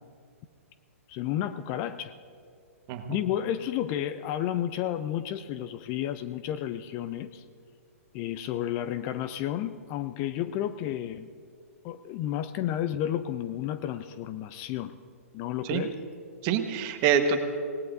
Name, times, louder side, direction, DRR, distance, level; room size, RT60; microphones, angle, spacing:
voice 1, 1.1-2.1 3.1-7.4 8.1-11.3 11.8-15.0 15.3-15.9, left 11 dB, 30° left, 12 dB, 0.5 m, -31 dB
voice 2, 2.9-3.2 15.6-15.8 16.4-17.4, right 7 dB, 35° right, 6 dB, 1.3 m, -26 dB
26.0 x 18.5 x 2.6 m, 2.3 s
figure-of-eight pair, 120°, 8 cm